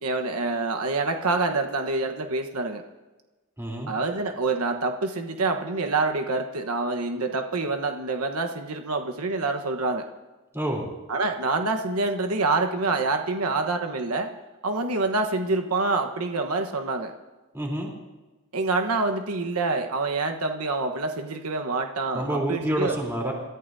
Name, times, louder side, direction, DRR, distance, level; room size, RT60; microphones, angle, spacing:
voice 1, 0.0-2.8 3.9-10.0 11.1-14.3 14.6-17.1 18.5-23.0, right 3 dB, 85° right, 5 dB, 1.3 m, -26 dB
voice 2, 3.6-3.9 10.5-10.8 17.5-17.9 22.1-23.3, right 1 dB, 10° right, -1 dB, 3.6 m, -28 dB
27.0 x 14.5 x 2.8 m, 1.2 s
head